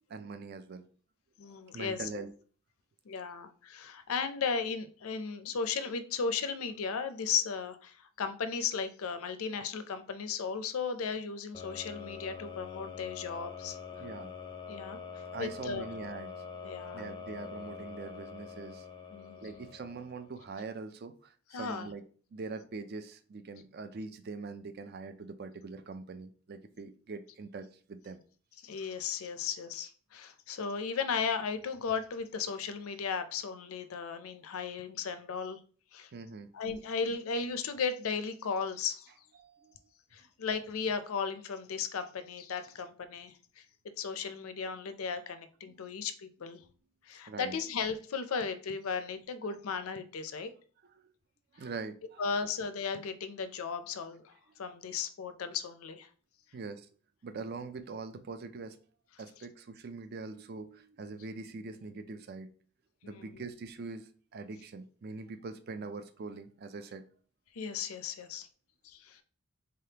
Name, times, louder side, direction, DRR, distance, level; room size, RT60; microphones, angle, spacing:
voice 1, 0.1-0.9 1.7-2.3 14.0-14.3 15.3-16.3 16.9-18.9 19.4-22.0 22.3-28.2 36.1-36.5 39.4-39.8 47.3-47.6 51.0-51.1 51.5-52.2 56.5-56.9 57.2-58.8 59.2-62.5 63.0-67.0, right 4 dB, 45° right, 10 dB, 0.4 m, -43 dB
voice 2, 1.4-2.2 3.1-13.8 14.7-15.0 15.4-15.8 16.6-17.1 19.1-19.7 21.5-21.9 28.6-35.6 35.9-36.1 36.5-39.1 40.1-43.6 44.0-46.6 47.0-50.5 52.2-54.3 54.6-56.1 63.0-63.3 67.5-68.5 68.8-69.2, left 5 dB, 80° left, 10 dB, 0.5 m, -36 dB
sound 1, 11.5-20.5, left 6 dB, 20° left, 0.4 m, -45 dB
3.7 x 3.4 x 2.8 m, 0.43 s
head